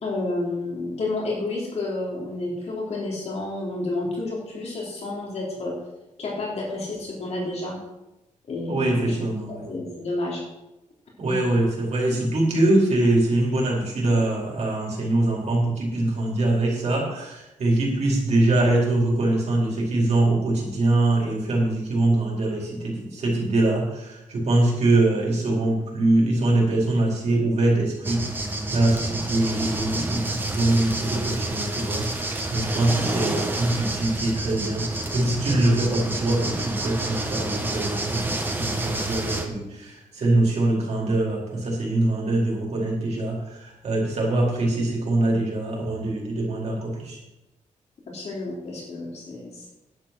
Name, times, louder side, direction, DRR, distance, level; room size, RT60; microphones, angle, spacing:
voice 1, 0.0-5.7 6.2-7.8 8.5-9.2 9.5-10.4 11.2-11.4 33.0-33.2 48.1-49.7, left 2 dB, 55° left, -3 dB, 3.4 m, -30 dB
voice 2, 8.7-9.7 11.2-28.2 28.7-47.2, right 2 dB, 55° right, -3 dB, 4.6 m, -23 dB
sound 1, 28.0-39.5, right 2 dB, 15° right, 1.2 m, -29 dB
11.0 x 9.2 x 6.1 m, 0.95 s
wide cardioid pair, 180°, 13 cm